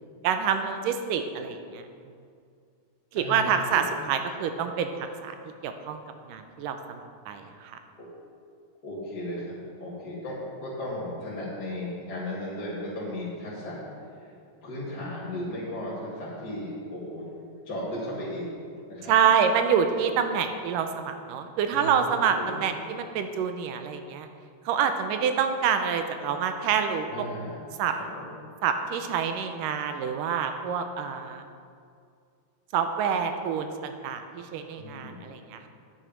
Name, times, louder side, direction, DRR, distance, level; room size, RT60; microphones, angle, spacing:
voice 1, 0.2-1.8 3.1-5.4 5.6-6.0 6.3-7.8 19.1-24.3 24.7-27.3 27.8-27.9 28.6-31.4 32.7-35.7, right 7 dB, 80° right, 7 dB, 2.2 m, -27 dB
voice 2, 3.2-3.5 3.7-3.9 8.0-8.1 8.8-13.8 14.2-14.3 14.6-17.2 17.7-18.5 18.9-19.1 21.7-21.9 22.4-22.6 27.1-27.6 28.2-28.3 34.8-35.3, left 1 dB, 35° left, -8 dB, 2.1 m, -35 dB
10.0 x 9.5 x 5.1 m, 2.3 s
omnidirectional pair, 4.0 m